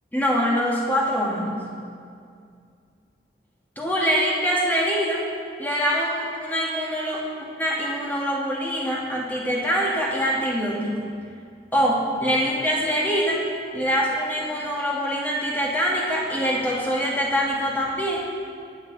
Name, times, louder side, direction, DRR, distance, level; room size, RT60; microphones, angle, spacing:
voice 1, 0.1-1.6 3.8-5.2 5.6-7.2 7.6-11.0 11.7-13.4 13.7-18.3, equal, 10° left, -4 dB, 1.7 m, -24 dB
20.5 x 7.4 x 4.0 m, 2.3 s
head